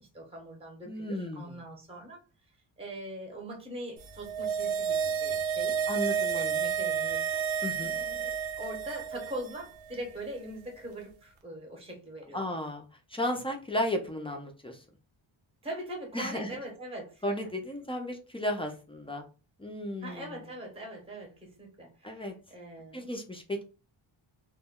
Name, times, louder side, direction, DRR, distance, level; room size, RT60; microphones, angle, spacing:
voice 1, 0.0-2.2 2.8-5.8 6.3-7.4 7.8-12.4 15.6-17.2 20.0-22.2 22.5-23.1, right 1 dB, 10° right, 0 dB, 0.7 m, -42 dB
voice 2, 0.9-1.5 5.9-6.6 7.6-7.9 12.3-14.8 16.1-16.6 17.2-19.2 19.6-20.4 22.0-22.3 22.9-23.6, left 1 dB, 15° left, 3 dB, 0.3 m, -34 dB
sound 1, 4.1-9.5 9.8-9.9, right 7 dB, 80° right, 0.6 m, -30 dB
2.1 x 2.1 x 3.5 m, 0.33 s
wide cardioid pair, 160°, 47 cm